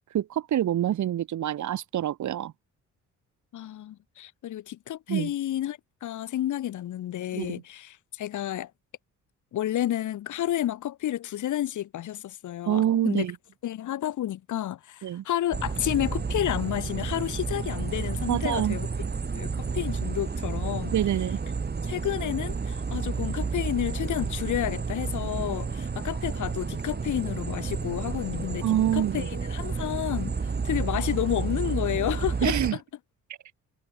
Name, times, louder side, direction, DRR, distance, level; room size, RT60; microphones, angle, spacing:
voice 1, 0.1-2.5 5.1-5.3 7.3-7.6 12.7-13.3 15.0-15.2 18.3-18.8 20.9-21.4 28.6-29.3 32.4-32.8, right 11 dB, 70° right, 6.5 m, -26 dB
voice 2, 3.5-8.7 9.5-13.3 13.6-18.9 19.3-20.9 21.8-28.6 28.9-32.8, left 12 dB, 75° left, 7.1 m, -31 dB
sound 1, 15.5-32.7, right 5 dB, 35° right, 6.4 m, -31 dB
cardioid pair, 90°, 30 cm